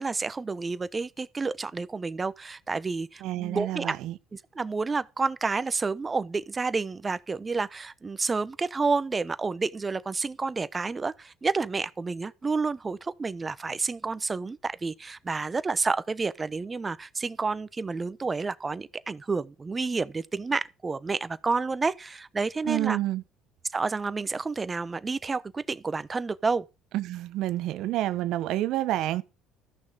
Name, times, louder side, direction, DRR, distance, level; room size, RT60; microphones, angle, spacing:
voice 1, 0.0-3.9 4.3-23.0 23.7-26.6, right 4 dB, 25° right, 0.9 m, -30 dB
voice 2, 3.2-4.2 22.7-23.2 26.9-29.2, right 14 dB, 70° right, 1.0 m, -28 dB
14.0 x 6.4 x 6.8 m
supercardioid pair, 80°, 0 cm